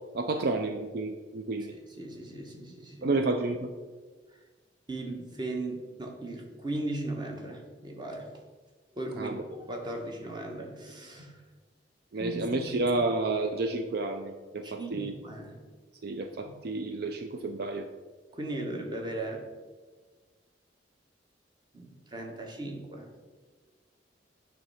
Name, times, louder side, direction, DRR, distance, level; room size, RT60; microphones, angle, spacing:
voice 1, 0.0-1.7 3.0-3.7 9.2-9.4 12.1-15.1 16.0-17.9, right 3 dB, 55° right, 6 dB, 0.4 m, -30 dB
voice 2, 1.7-3.2 4.9-8.3 8.9-11.4 12.2-12.8 14.6-15.6 16.4-16.5 18.3-19.5 21.7-23.1, right 2 dB, 25° right, 1 dB, 1.1 m, -37 dB
8.9 x 3.3 x 5.4 m, 1.4 s
head